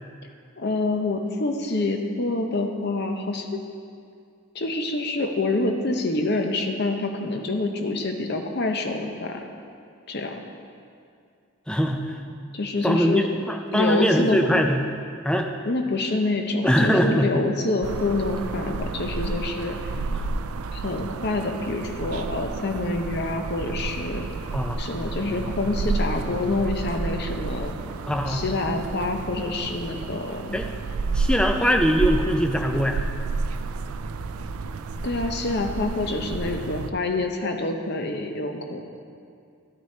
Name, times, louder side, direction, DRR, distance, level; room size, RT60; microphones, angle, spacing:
voice 1, 0.6-3.6 4.5-9.5 10.1-10.4 12.5-13.3 13.7-14.4 15.7-19.9 20.7-24.3 24.8-27.8 28.3-30.6 35.0-38.8, left 2 dB, 50° left, 4 dB, 0.7 m, -27 dB
voice 2, 11.7-12.2 12.8-14.8 15.2-15.5 16.6-17.5 20.1-20.3 24.5-24.8 28.1-28.4 30.5-30.7 31.1-33.0, equal, 5° left, 4 dB, 0.4 m, -22 dB
sound 1, 17.8-36.9, right 3 dB, 80° right, 0.4 m, -31 dB
11.5 x 6.1 x 4.3 m, 2.4 s
head